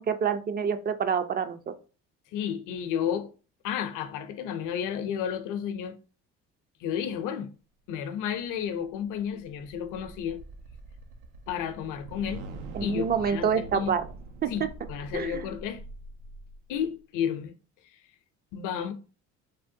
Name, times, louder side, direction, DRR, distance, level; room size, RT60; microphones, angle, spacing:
voice 1, 0.0-1.6 12.7-14.0 14.4-14.5 15.1-15.5, right 7 dB, 30° right, 0.4 m, -27 dB
voice 2, 2.3-3.3 3.6-6.0 6.8-7.5 7.9-10.4 11.5-12.4 12.8-14.0 14.5-15.8 16.7-17.5 18.5-18.9, left 8 dB, 65° left, 0.6 m, -32 dB
sound 1, 8.5-16.9, right 3 dB, 80° right, 0.5 m, -44 dB
3.5 x 2.1 x 2.6 m
supercardioid pair, 75°, 34 cm